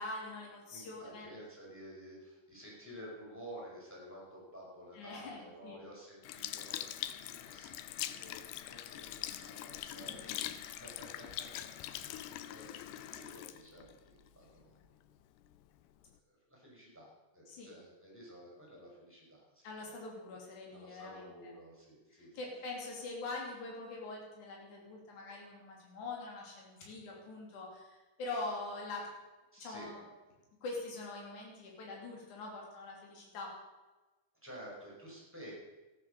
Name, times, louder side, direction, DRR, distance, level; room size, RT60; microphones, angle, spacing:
voice 1, 0.0-1.3 4.9-5.8 8.1-8.2 9.9-10.4 17.5-17.7 19.6-21.3 22.1-29.1 29.6-30.0 30.6-33.5, left 2 dB, 55° left, -1 dB, 4.3 m, -44 dB
voice 2, 0.7-11.5 11.8-12.2 12.5-14.8 16.0-19.9 20.2-20.4 20.7-22.4 29.5-29.9 34.4-35.5, equal, 5° right, -4 dB, 5.0 m, -52 dB
Sink (filling or washing) / Liquid, 6.2-14.8 15.4-15.6, left 12 dB, 85° left, 2.5 m, -43 dB
14.0 x 10.0 x 6.7 m, 1.1 s
omnidirectional pair, 4.3 m